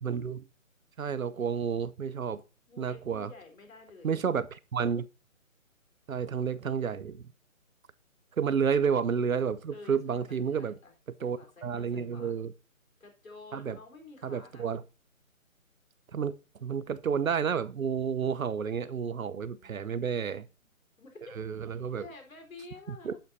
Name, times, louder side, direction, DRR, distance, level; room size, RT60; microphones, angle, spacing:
voice 1, 0.0-0.4 1.0-2.4 2.8-3.3 4.0-5.1 6.1-7.3 8.4-10.7 11.2-12.5 13.5-13.8 14.2-14.8 16.1-16.3 16.6-20.5 21.4-22.0 22.9-23.1, right 6 dB, 75° right, 0.9 m, -30 dB
voice 2, 2.7-4.1 9.7-10.9 11.2-12.4 13.0-14.7 19.3-20.5 21.0-21.4 22.0-23.2, left 3 dB, 70° left, 4.3 m, -51 dB
11.5 x 7.8 x 2.7 m
hypercardioid pair, 175°, 42 cm